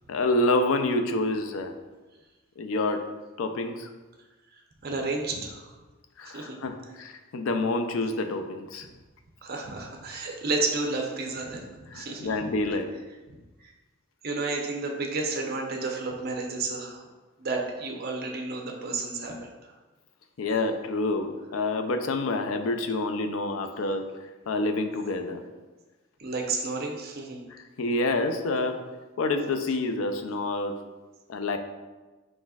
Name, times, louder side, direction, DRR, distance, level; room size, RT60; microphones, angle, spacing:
voice 1, 0.1-1.7 2.6-3.0 3.4-3.9 6.2-8.9 11.9-12.9 20.4-24.0 24.5-25.4 27.5-28.8 29.2-30.7 31.3-31.6, left 2 dB, 85° left, 7 dB, 0.4 m, -27 dB
voice 2, 4.8-5.7 6.3-6.6 9.4-11.7 11.9-12.5 14.2-17.0 17.4-19.7 26.2-27.4, right 3 dB, 50° right, 1 dB, 0.6 m, -31 dB
4.9 x 4.0 x 2.3 m, 1.2 s
head